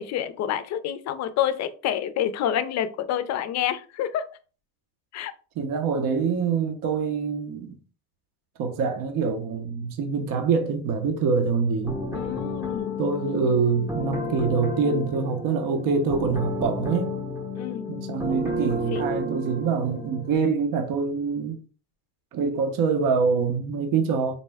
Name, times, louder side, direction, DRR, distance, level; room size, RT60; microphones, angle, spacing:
voice 1, 0.0-4.3 5.1-5.3 12.1-12.9 17.5-17.8 18.9-19.0, left 10 dB, 45° left, 0.4 m, -28 dB
voice 2, 5.6-7.8 8.6-12.0 13.0-17.1 17.9-21.6 22.3-24.3, right 5 dB, 55° right, 0.7 m, -25 dB
sound 1, 11.8-20.4, left 1 dB, 10° right, 0.7 m, -31 dB
4.1 x 2.1 x 3.4 m
cardioid pair, 130°, 40 cm